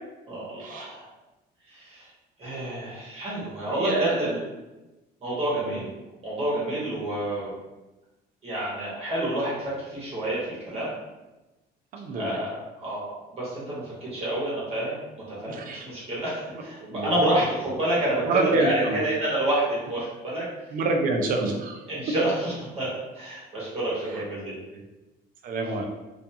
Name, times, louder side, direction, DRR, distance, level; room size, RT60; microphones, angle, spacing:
voice 1, 0.3-1.1 1.7-2.1 2.4-4.4 5.2-5.9 6.2-7.5 8.4-10.9 12.1-15.0 15.3-20.4 21.9-22.9 23.1-24.6, right 1 dB, 35° right, -7 dB, 0.9 m, -28 dB
voice 2, 3.7-4.4 5.7-5.8 11.9-12.5 15.5-15.9 16.8-17.3 18.3-19.0 20.7-21.8 24.1-24.2 24.7-24.8 25.4-25.8, right 3 dB, 55° right, 2 dB, 0.5 m, -27 dB
2.5 x 2.3 x 2.7 m, 1.1 s
cardioid pair, 140°, 17 cm